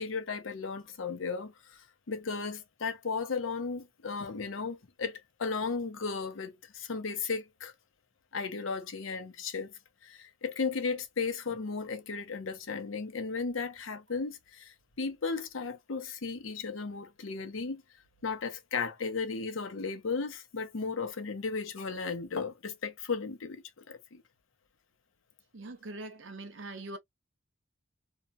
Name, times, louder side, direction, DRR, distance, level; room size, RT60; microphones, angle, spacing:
voice 1, 0.0-7.7 8.3-9.7 10.0-17.8 18.2-24.2, left 4 dB, 75° left, 0.7 m, -35 dB
voice 2, 25.5-27.0, right 2 dB, 65° right, 0.7 m, -42 dB
2.8 x 2.2 x 2.3 m
head